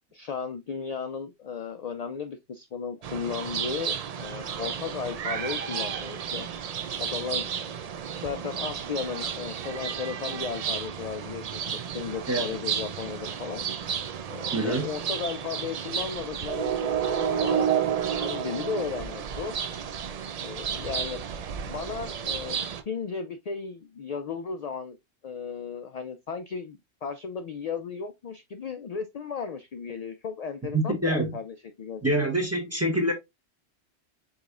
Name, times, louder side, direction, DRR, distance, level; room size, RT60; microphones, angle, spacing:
voice 1, 0.1-6.5 7.0-7.5 8.2-11.7 11.9-13.7 14.3-17.0 17.4-19.5 20.4-21.2 21.6-22.6 22.9-25.0 25.2-32.3, left 6 dB, 60° left, 0.4 m, -35 dB
sound 1, 3.0-22.8, right 8 dB, 60° right, 0.4 m, -31 dB
voice 2, 14.5-14.9 30.7-31.3 32.0-33.1, right 1 dB, 15° right, 0.8 m, -25 dB
5.0 x 3.9 x 2.4 m
omnidirectional pair, 1.1 m